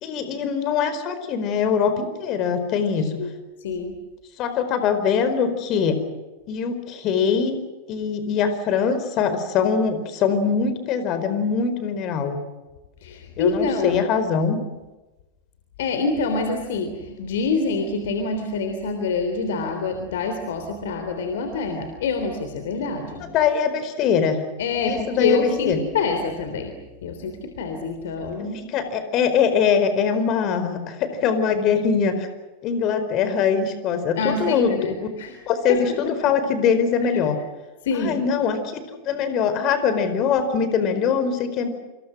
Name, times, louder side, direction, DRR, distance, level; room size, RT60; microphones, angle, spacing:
voice 1, 0.0-3.1 4.4-6.0 6.5-7.6 7.9-12.4 13.4-14.6 23.2-24.4 24.8-25.8 28.5-32.3 32.6-35.1 35.5-37.4 38.1-41.7, left 6 dB, 35° left, 10 dB, 4.6 m, -22 dB
voice 2, 3.6-4.0 13.0-14.0 15.8-23.3 24.6-28.6 34.2-35.4 35.7-35.8 36.2-36.3 37.8-38.2, left 4 dB, 55° left, 7 dB, 3.5 m, -26 dB
28.0 x 27.5 x 6.4 m, 1.1 s
figure-of-eight pair, 90°, 0 cm